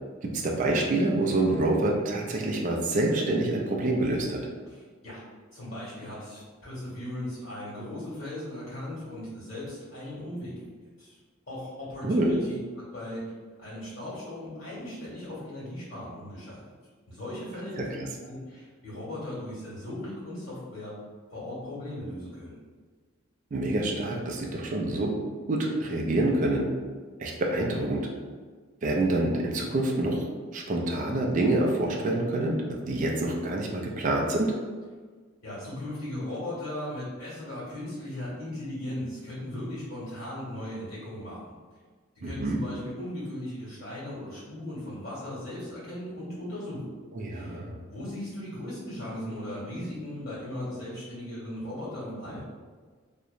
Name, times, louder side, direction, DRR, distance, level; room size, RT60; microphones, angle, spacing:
voice 1, 0.3-4.4 12.0-12.3 17.8-17.9 23.5-25.1 25.5-26.7 27.2-28.0 28.8-30.2 30.5-34.5 42.2-42.6 47.1-47.8, right 2 dB, 40° right, -1 dB, 0.3 m, -26 dB
voice 2, 4.7-5.2 5.5-11.2 11.5-13.3 13.6-16.6 17.1-20.9 21.3-22.6 35.4-41.5 42.1-46.8 47.3-47.6 47.9-52.4, left 1 dB, 55° left, -10 dB, 1.5 m, -38 dB
2.8 x 2.1 x 2.4 m, 1.5 s
head